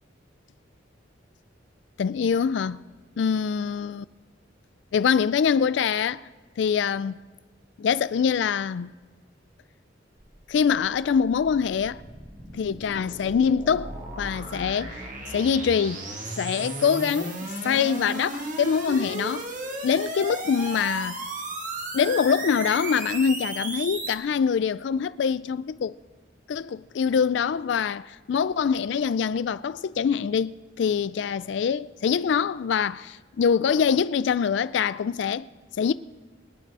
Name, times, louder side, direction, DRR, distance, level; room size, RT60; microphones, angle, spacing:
voice 1, 2.0-2.8 3.2-4.0 4.9-6.2 6.6-7.2 7.8-8.9 10.5-12.0 12.5-13.9 14.2-16.0 16.4-19.5 19.8-21.2 21.9-26.0 26.5-35.5 35.8-35.9, left 6 dB, 70° left, 0.3 m, -24 dB
sound 1, 10.2-24.1, right 2 dB, 45° right, 1.7 m, -35 dB
24.0 x 9.2 x 4.8 m
head